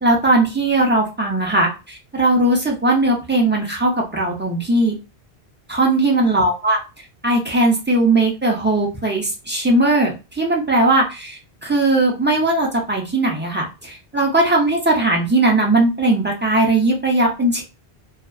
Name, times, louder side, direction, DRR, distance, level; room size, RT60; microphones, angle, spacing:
voice 1, 0.0-5.0 5.7-6.8 7.2-17.6, right 2 dB, 15° right, -1 dB, 0.3 m, -18 dB
2.5 x 2.3 x 2.3 m, 0.30 s
omnidirectional pair, 1.1 m